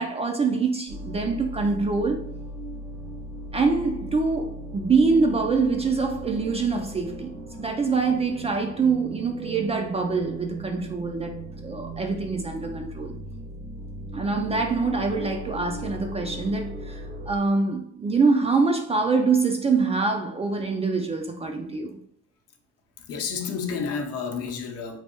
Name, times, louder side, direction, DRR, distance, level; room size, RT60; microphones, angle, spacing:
voice 1, 0.0-2.3 3.5-7.3 7.6-11.3 11.6-13.1 14.1-22.0, right 4 dB, 20° right, 0.3 m, -24 dB
sound 1, 0.9-17.4, right 1 dB, 65° right, 1.0 m, -38 dB
voice 2, 23.1-25.0, left 5 dB, 50° left, 0.7 m, -30 dB
3.2 x 2.6 x 2.8 m
cardioid pair, 100°, 30 cm